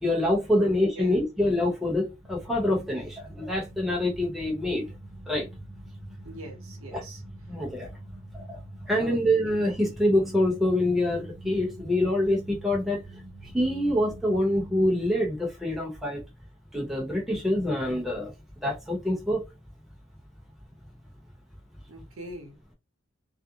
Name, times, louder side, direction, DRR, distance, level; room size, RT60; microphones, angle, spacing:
voice 1, 0.0-4.8 5.3-5.5 6.9-7.0 7.5-7.9 8.3-8.6 8.9-13.0 13.5-16.2 16.7-18.3 18.6-19.4, left 1 dB, ahead, 0.8 m, -25 dB
voice 2, 0.6-1.2 6.2-7.2 9.0-9.2 21.9-22.6, right 2 dB, 85° right, 0.8 m, -42 dB
sound 1, 2.2-14.9, right 1 dB, 30° right, 0.5 m, -45 dB
2.5 x 2.0 x 2.8 m
head